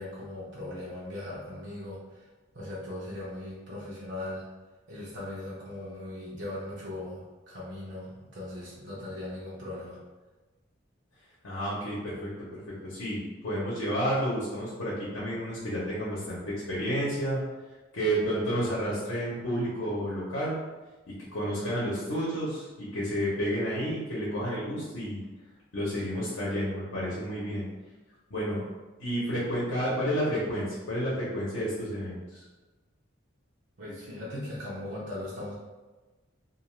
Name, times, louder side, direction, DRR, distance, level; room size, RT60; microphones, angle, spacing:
voice 1, 0.0-2.3 2.5-4.4 4.9-10.0 33.8-35.5, left 1 dB, 65° right, -7 dB, 0.7 m, -39 dB
voice 2, 11.4-17.4 17.9-20.6 21.3-25.2 25.7-27.7 28.3-28.6 29.0-32.4, equal, 90° left, -8 dB, 0.8 m, -31 dB
2.5 x 2.4 x 3.1 m, 1.2 s
head